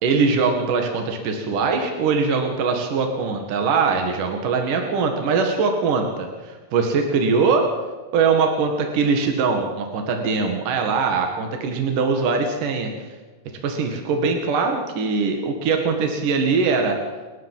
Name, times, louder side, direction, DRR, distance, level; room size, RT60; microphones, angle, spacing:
voice 1, 0.0-7.7 8.1-13.2 13.6-17.0, right 4 dB, 75° right, 3 dB, 3.5 m, -22 dB
30.0 x 12.0 x 7.5 m, 1.3 s
omnidirectional pair, 3.9 m